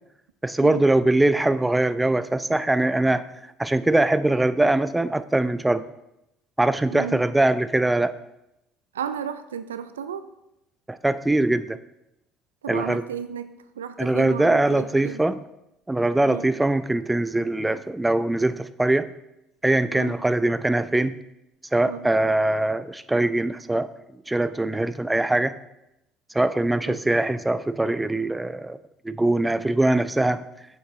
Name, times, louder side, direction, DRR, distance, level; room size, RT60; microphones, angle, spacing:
voice 1, 0.4-3.2 3.6-5.8 6.6-8.1 10.9-11.8 12.7-13.0 14.0-15.4 15.9-19.1 19.6-21.2 21.7-23.9 24.3-25.5 26.3-28.8 29.0-30.4, right 2 dB, 10° right, 14 dB, 0.4 m, -22 dB
voice 2, 6.9-7.3 8.9-10.3 12.6-15.2 16.3-16.5 19.9-20.2 21.9-22.1 26.9-27.0, right 7 dB, 85° right, 12 dB, 0.3 m, -34 dB
8.0 x 5.8 x 3.1 m, 0.88 s
hypercardioid pair, 60°, 0 cm